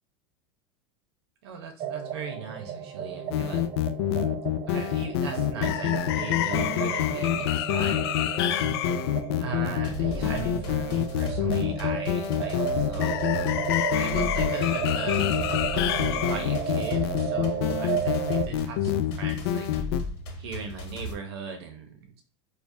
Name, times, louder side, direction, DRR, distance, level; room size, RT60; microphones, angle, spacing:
voice 1, 1.4-3.6 4.7-8.8 9.4-13.2 14.0-19.7 20.4-22.2, right 5 dB, 90° right, 5 dB, 0.8 m, -38 dB
sound 1, 1.8-18.5, right 7 dB, 30° right, 0.5 m, -33 dB
sound 2, 3.3-20.0, left 11 dB, 80° left, 0.4 m, -26 dB
sound 3, 9.8-21.1, left 1 dB, 65° left, 1.5 m, -38 dB
5.0 x 2.3 x 2.6 m, 0.37 s
supercardioid pair, 155°, 13 cm